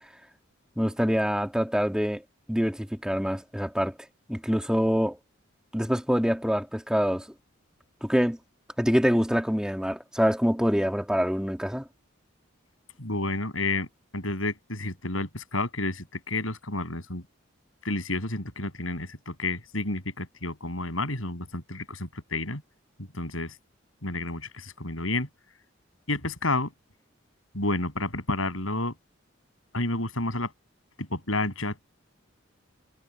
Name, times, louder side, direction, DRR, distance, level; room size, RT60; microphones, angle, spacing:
voice 1, 0.8-3.9 4.3-5.2 5.7-7.3 8.0-8.4 8.8-11.9, equal, 5° right, 2.7 m, -25 dB
voice 2, 13.0-13.9 14.1-17.2 17.8-22.6 23.1-23.5 24.0-25.3 26.1-26.7 27.5-28.9 29.7-30.5 31.0-31.8, left 2 dB, 80° left, 7.9 m, -30 dB
head